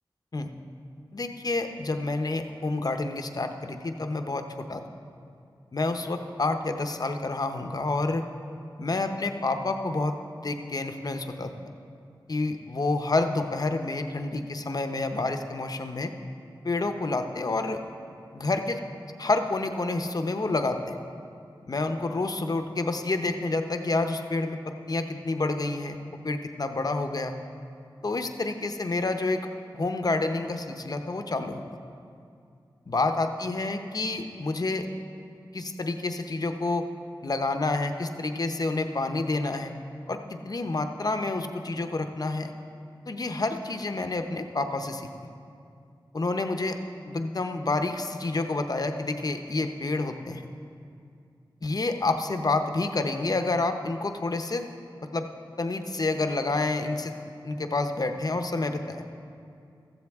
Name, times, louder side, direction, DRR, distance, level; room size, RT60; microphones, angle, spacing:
voice 1, 1.1-4.8 5.7-8.3 8.8-11.5 12.3-16.1 16.6-17.8 18.3-18.8 19.2-21.0 21.7-26.0 26.2-27.3 28.0-29.5 29.7-31.7 32.9-34.9 35.5-36.9 37.2-39.7 40.1-42.5 43.1-45.3 46.1-46.8 47.0-50.5 51.6-54.7 55.1-55.3 55.6-59.0, left 2 dB, 50° left, 6 dB, 0.8 m, -29 dB
15.0 x 14.0 x 3.6 m, 2.4 s
wide cardioid pair, 90°, 8 cm